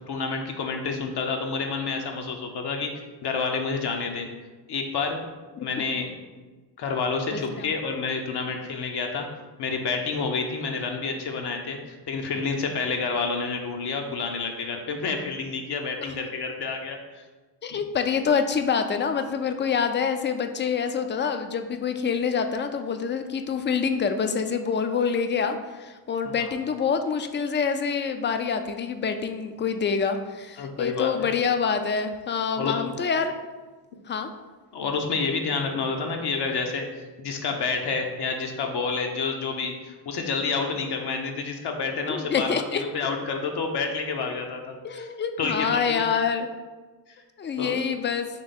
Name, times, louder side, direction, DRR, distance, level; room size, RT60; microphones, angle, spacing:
voice 1, 0.1-2.9 3.2-4.3 4.7-5.2 5.6-6.1 6.8-9.3 9.6-17.2 17.7-17.8 26.2-26.5 30.6-31.3 32.6-32.9 34.7-36.8 37.2-42.5 42.8-45.1 45.4-46.0 47.6-47.8, left 4 dB, 65° left, 3 dB, 0.8 m, -29 dB
voice 2, 7.3-7.7 17.6-33.3 34.1-34.3 42.1-42.8 44.8-46.5 47.4-48.3, left 6 dB, 30° left, 8 dB, 0.4 m, -26 dB
3.6 x 2.9 x 4.1 m, 1.3 s
cardioid pair, 75°, 43 cm